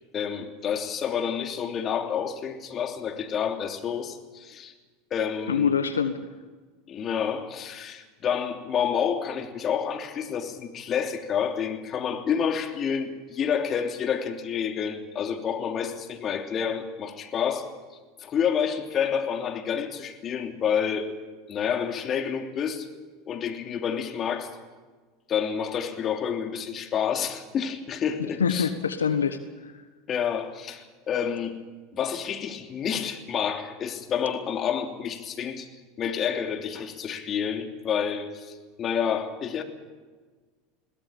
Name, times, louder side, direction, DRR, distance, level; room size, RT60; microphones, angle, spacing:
voice 1, 0.1-4.7 5.1-5.7 6.9-17.7 18.2-21.1 21.5-22.9 23.2-24.6 25.3-28.7 30.1-31.6 31.9-35.7 36.0-39.6, left 7 dB, 40° left, 5 dB, 3.0 m, -29 dB
voice 2, 5.5-6.2 28.4-29.7, left 7 dB, 90° left, 10 dB, 1.2 m, -25 dB
22.0 x 17.5 x 8.8 m, 1.4 s
hypercardioid pair, 85°, 0 cm